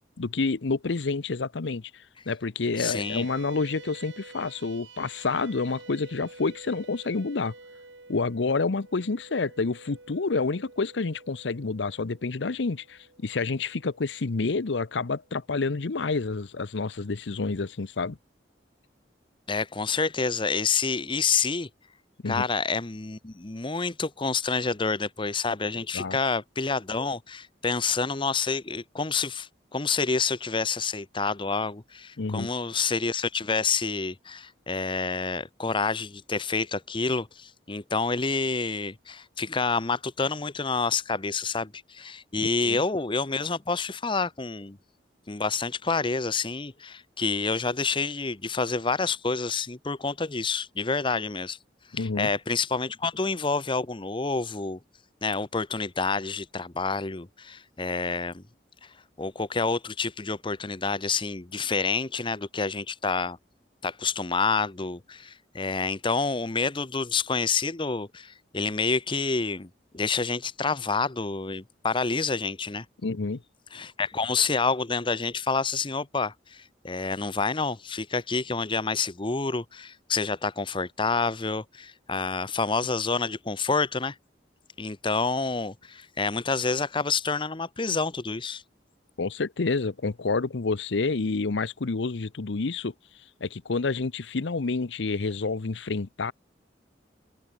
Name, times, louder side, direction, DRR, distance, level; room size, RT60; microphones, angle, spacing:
voice 1, 0.2-7.5 8.1-18.2 22.2-22.5 25.9-26.2 32.2-32.5 42.6-42.8 51.9-52.3 73.0-73.4 89.2-92.9 93.4-96.3, left 3 dB, 85° left, 0.7 m, -28 dB
voice 2, 2.8-3.2 19.5-21.7 22.2-44.8 45.3-51.6 51.9-54.8 55.2-58.4 58.8-58.9 59.2-63.4 63.8-72.9 73.7-84.1 84.8-88.6, left 4 dB, 30° left, 1.0 m, -28 dB
sound 1, 2.9-15.6, right 3 dB, 90° right, 6.5 m, -50 dB
open air
head